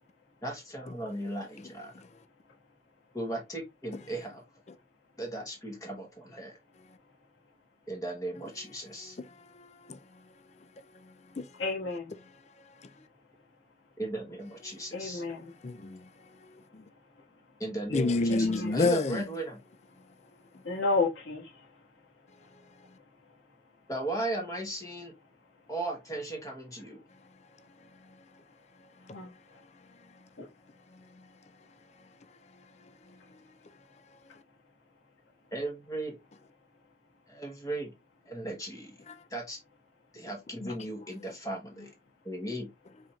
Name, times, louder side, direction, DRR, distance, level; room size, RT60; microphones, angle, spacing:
voice 1, 0.4-1.9 3.1-4.4 5.2-6.6 7.9-9.2 14.0-15.2 17.6-19.6 23.9-25.1 25.7-27.0 35.5-36.2 37.3-37.9 38.3-39.0 39.3-39.6 40.1-41.9 42.2-42.7, right 2 dB, 20° left, 1.2 m, -36 dB
voice 2, 9.5-10.0 11.0-11.5 12.8-12.9 15.6-16.1 16.4-16.8 17.9-19.2 29.1-29.2 30.9-31.3 33.1-33.2 34.3-34.4 40.6-40.7, left 3 dB, 35° left, 0.4 m, -30 dB
voice 3, 11.6-12.1 14.9-15.5 18.3-18.7 20.6-21.5 29.1-29.3, left 3 dB, 75° left, 2.0 m, -31 dB
4.8 x 4.3 x 2.4 m
head